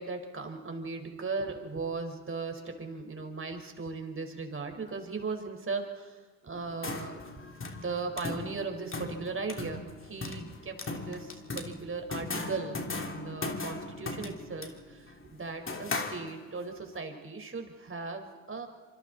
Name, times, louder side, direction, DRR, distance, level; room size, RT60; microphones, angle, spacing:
voice 1, 0.0-7.2 7.8-18.7, right 4 dB, 35° right, 5 dB, 4.7 m, -37 dB
sound 1, 6.5-16.7, left 3 dB, 35° left, 3.1 m, -38 dB
26.0 x 25.5 x 4.2 m, 1.5 s
supercardioid pair, 55°, 35 cm